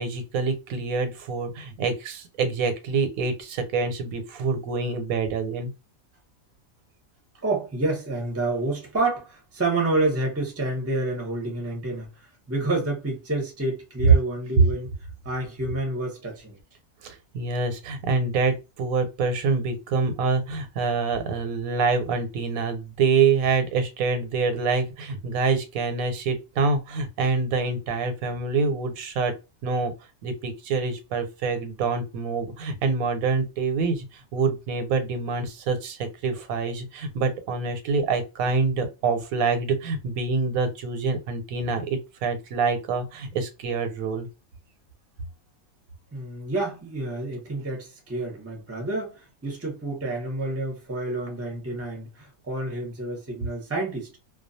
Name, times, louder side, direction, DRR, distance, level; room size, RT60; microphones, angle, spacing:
voice 1, 0.0-5.7 17.0-29.3 29.6-29.9 30.2-44.3, right 4 dB, 85° right, 1.1 m, -26 dB
voice 2, 7.4-16.6 46.1-54.1, right 2 dB, 15° right, 0.6 m, -29 dB
2.3 x 2.2 x 2.6 m
omnidirectional pair, 1.4 m